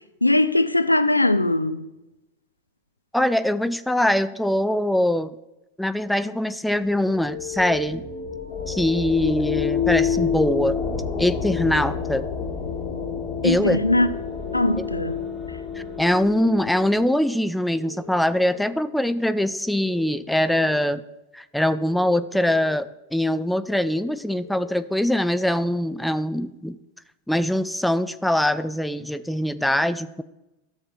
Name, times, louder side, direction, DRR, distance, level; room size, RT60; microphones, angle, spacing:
voice 1, 0.2-1.9 13.4-14.1 14.5-15.2, left 2 dB, 85° left, 0.4 m, -20 dB
voice 2, 3.1-5.3 5.8-8.0 8.7-10.8 11.2-12.3 13.4-13.8 14.8-14.9 16.0-21.0 21.3-26.8 27.3-30.2, left 1 dB, ahead, 0.3 m, -23 dB
sound 1, 6.7-17.3, left 7 dB, 25° left, 1.2 m, -28 dB
sound 2, 11.8-12.8 13.8-14.8 15.8-16.8 17.8-18.8 19.7-20.8 21.7-22.7 23.7-24.7, left 2 dB, 70° right, 0.8 m, -43 dB
13.0 x 7.2 x 2.2 m
figure-of-eight pair, 90°, 0 cm